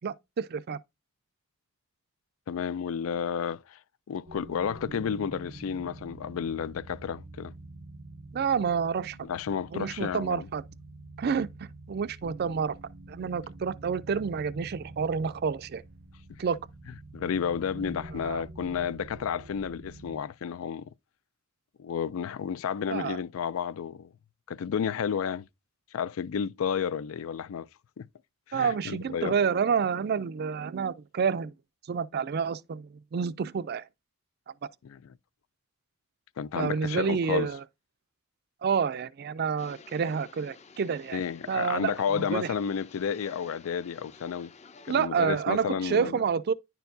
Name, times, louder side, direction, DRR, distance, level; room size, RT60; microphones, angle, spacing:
voice 1, 0.0-0.8 8.3-9.2 9.7-10.6 11.2-12.8 13.1-15.8 16.4-16.6 18.3-18.4 22.9-23.2 28.5-31.5 31.9-33.9 36.6-37.6 38.6-41.2 41.5-42.5 44.9-46.5, right 6 dB, 50° right, 0.4 m, -29 dB
voice 2, 2.5-3.8 4.1-7.5 9.2-10.5 17.1-20.9 21.8-24.1 24.5-25.5 25.9-27.7 28.0-28.1 28.5-29.3 34.8-35.0 36.4-37.5 41.1-44.5 44.9-46.2, left 7 dB, 85° left, 0.4 m, -31 dB
sound 1, 4.3-20.2, right 2 dB, 85° right, 0.7 m, -46 dB
sound 2, 39.6-45.1, left 4 dB, 35° left, 0.5 m, -52 dB
10.5 x 4.5 x 2.6 m
head